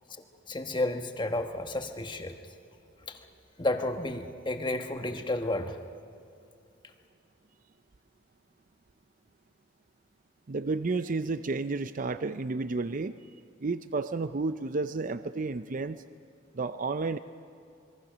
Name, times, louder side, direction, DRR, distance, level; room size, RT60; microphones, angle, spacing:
voice 1, 0.1-2.4 3.1-3.3 3.6-5.8, left 2 dB, 25° left, 6 dB, 1.3 m, -32 dB
voice 2, 10.5-13.2 13.6-16.0 16.5-17.2, right 3 dB, 45° right, 11 dB, 0.5 m, -31 dB
26.5 x 22.0 x 6.2 m, 2.5 s
head